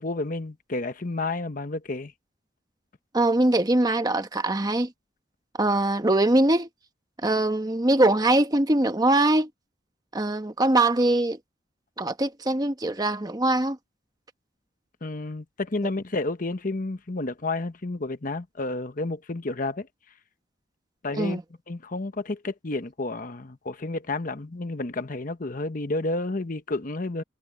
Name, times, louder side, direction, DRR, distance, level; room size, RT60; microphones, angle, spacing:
voice 1, 0.0-2.1 15.0-19.9 21.0-27.2, left 2 dB, 45° left, 1.0 m, -31 dB
voice 2, 3.1-4.9 5.6-6.7 7.2-9.5 10.1-11.4 12.0-13.8 21.2-21.4, right 2 dB, 20° right, 1.1 m, -22 dB
head